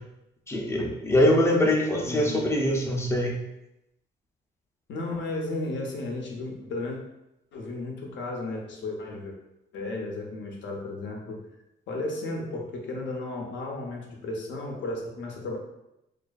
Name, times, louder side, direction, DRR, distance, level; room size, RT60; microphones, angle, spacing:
voice 1, 0.5-3.4, left 1 dB, 15° left, 0 dB, 0.5 m, -23 dB
voice 2, 2.0-2.4 4.9-7.0 7.5-9.4 9.7-11.4 11.9-15.6, left 2 dB, 65° left, 1 dB, 0.6 m, -34 dB
2.4 x 2.4 x 2.3 m, 0.86 s
cardioid pair, 90°, 20 cm